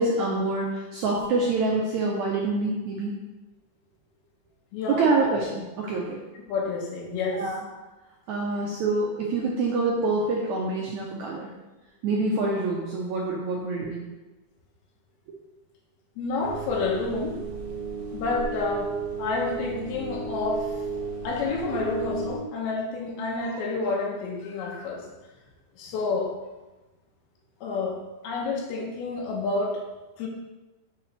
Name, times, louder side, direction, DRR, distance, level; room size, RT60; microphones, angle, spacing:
voice 1, 0.0-3.1 4.9-6.2 7.3-7.6 8.3-11.5 12.0-14.0, right 3 dB, 80° right, -3 dB, 1.6 m, -26 dB
voice 2, 4.7-5.3 6.5-7.4 16.2-17.4 18.1-18.9 19.2-20.7 21.2-25.1 25.8-26.3 27.6-29.8 30.2-30.3, left 3 dB, 90° left, -2 dB, 2.9 m, -29 dB
sound 1, 16.4-22.4, right 4 dB, 60° right, 2.1 m, -34 dB
6.9 x 5.9 x 3.2 m, 1.1 s
omnidirectional pair, 4.3 m